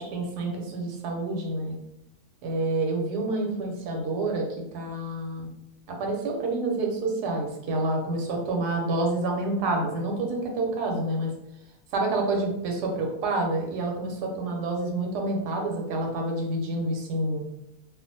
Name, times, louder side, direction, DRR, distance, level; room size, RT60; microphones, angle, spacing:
voice 1, 0.0-1.7 2.4-5.5 5.9-11.3 11.9-17.4, right 2 dB, 80° right, 1 dB, 1.2 m, -28 dB
2.6 x 2.4 x 2.6 m, 0.83 s
omnidirectional pair, 1.7 m